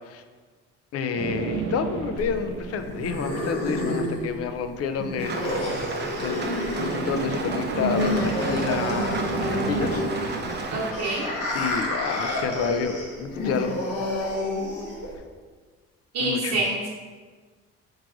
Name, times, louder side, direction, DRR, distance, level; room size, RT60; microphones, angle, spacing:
voice 1, 0.9-5.6 6.2-10.1 11.5-13.8 16.2-16.6, left 6 dB, 55° left, 8 dB, 0.4 m, -29 dB
sound 1, 1.2-4.0 6.7-12.1, right 6 dB, 80° right, 0.5 m, -33 dB
sound 2, 2.2-15.2, left 1 dB, 85° left, 1.0 m, -30 dB
Rain, 5.2-10.9, right 3 dB, 35° right, 0.6 m, -34 dB
voice 2, 10.7-11.3 16.1-16.9, right 2 dB, 55° right, -5 dB, 0.9 m, -26 dB
4.7 x 2.5 x 4.7 m, 1.5 s
cardioid pair, 90°, 30 cm